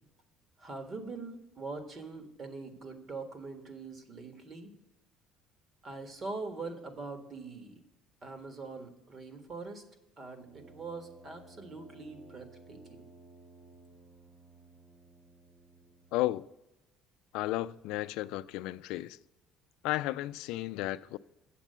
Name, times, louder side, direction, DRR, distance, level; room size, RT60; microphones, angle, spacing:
voice 1, 0.6-4.7 5.8-7.8 8.2-9.8 10.2-13.0, right 3 dB, 35° right, 1.6 m, -43 dB
Brass instrument, 10.4-16.3, right 3 dB, 65° right, 2.6 m, -56 dB
voice 2, 16.1-16.5 17.3-19.2 19.8-21.2, left 17 dB, 80° left, 0.3 m, -33 dB
8.3 x 7.4 x 6.7 m
cardioid pair, 140°, 0 cm